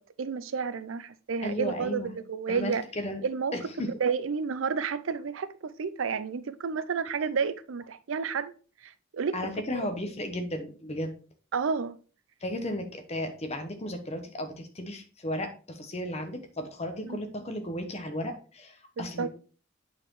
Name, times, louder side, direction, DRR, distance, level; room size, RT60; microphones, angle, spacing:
voice 1, 0.2-2.8 3.2-3.5 3.8-8.5 8.8-9.4 9.7-9.8 11.5-12.0 17.1-17.2 19.0-19.3, right 5 dB, 80° right, 0.5 m, -31 dB
voice 2, 1.4-2.2 2.5-3.2 3.5-3.9 9.3-11.1 12.4-19.3, left 1 dB, 35° left, 1.0 m, -34 dB
8.5 x 4.4 x 3.2 m
head